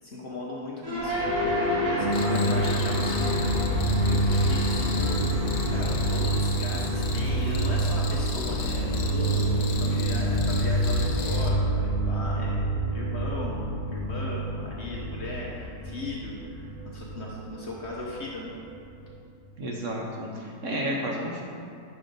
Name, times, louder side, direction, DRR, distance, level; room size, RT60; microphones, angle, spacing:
voice 1, 0.0-1.1 1.8-3.4 4.0-5.3 5.7-12.6 12.9-13.6 13.9-18.5, left 2 dB, 55° left, -3 dB, 0.8 m, -37 dB
sound 1, 0.8-19.1, right 1 dB, 25° right, 1.4 m, -27 dB
Cricket, 2.1-11.5, left 4 dB, 85° left, 1.3 m, -38 dB
voice 2, 19.6-21.4, equal, 55° right, -2 dB, 1.0 m, -31 dB
5.5 x 5.4 x 5.2 m, 2.5 s
omnidirectional pair, 1.8 m